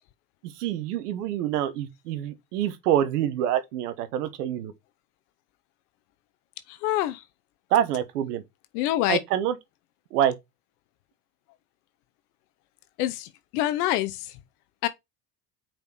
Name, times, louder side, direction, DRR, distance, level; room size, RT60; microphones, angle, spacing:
voice 1, 0.6-4.7 7.7-8.4 9.1-9.6 10.1-10.3, right 11 dB, 80° right, 1.2 m, -26 dB
voice 2, 6.8-7.2 8.7-9.2 13.0-13.3 13.5-14.2 14.8-14.9, left 14 dB, 70° left, 0.8 m, -25 dB
5.2 x 4.6 x 6.0 m
hypercardioid pair, 70°, 47 cm